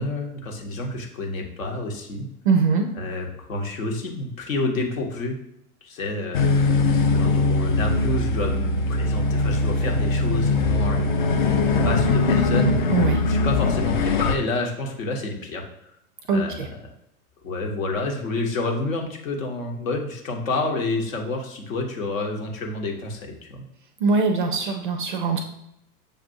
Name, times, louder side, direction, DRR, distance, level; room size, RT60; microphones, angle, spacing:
voice 1, 0.0-2.3 2.9-5.4 5.8-6.5 7.2-11.3 11.6-13.0 13.2-15.6 16.3-16.8 17.4-23.6, left 2 dB, 60° left, 2 dB, 1.0 m, -29 dB
voice 2, 2.4-2.9 12.9-13.2 16.3-16.7 24.0-25.4, right 4 dB, 35° right, 4 dB, 0.4 m, -22 dB
sound 1, 6.3-14.3, left 3 dB, 35° left, 0.4 m, -21 dB
6.6 x 2.5 x 2.6 m, 0.79 s
figure-of-eight pair, 100°, 45 cm